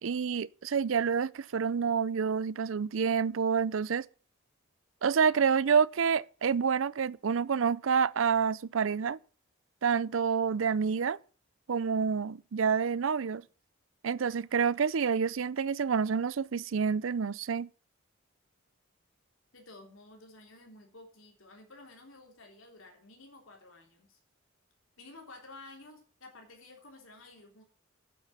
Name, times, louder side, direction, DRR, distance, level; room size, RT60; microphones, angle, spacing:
voice 1, 0.0-4.1 5.0-9.2 9.8-11.2 11.7-13.4 14.0-17.7, right 6 dB, 70° right, 0.5 m, -28 dB
voice 2, 19.5-24.2 25.0-27.6, left 2 dB, 75° left, 3.5 m, -52 dB
9.2 x 8.2 x 8.3 m
head